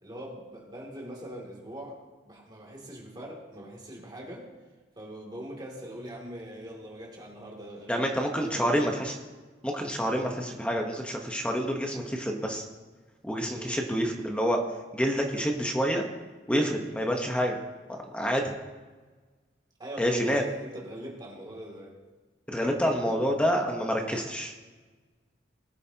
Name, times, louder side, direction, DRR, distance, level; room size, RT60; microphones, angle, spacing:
voice 1, 0.0-4.5 5.0-8.1 8.4-8.9 13.5-13.8 19.8-22.0, equal, 25° right, -2 dB, 2.6 m, -42 dB
voice 2, 7.9-9.1 9.6-12.6 13.2-14.6 14.9-16.0 16.5-17.6 17.9-18.5 20.0-20.4 22.5-24.5, equal, 5° left, 2 dB, 1.0 m, -28 dB
20.0 x 9.2 x 2.9 m, 1.3 s
head